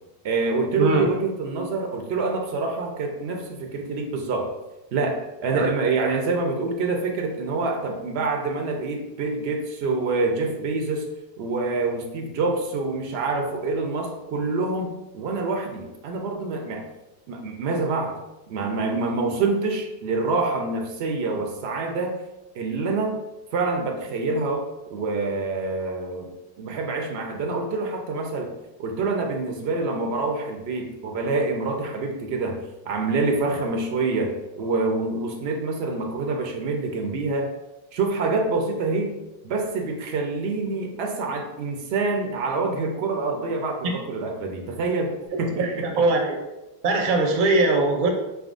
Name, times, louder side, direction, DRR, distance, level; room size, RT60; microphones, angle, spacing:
voice 1, 0.2-4.5 4.9-11.1 11.4-16.8 17.3-18.2 18.5-22.2 22.5-23.2 23.5-24.6 24.9-26.3 26.6-28.5 28.8-32.6 32.9-37.5 37.9-39.1 39.4-45.1 45.4-46.0, right 3 dB, 85° right, 2 dB, 0.8 m, -26 dB
voice 2, 45.6-46.4 46.8-48.1, right 2 dB, 60° right, 2 dB, 0.8 m, -21 dB
4.1 x 3.5 x 2.5 m, 0.99 s
omnidirectional pair, 1.0 m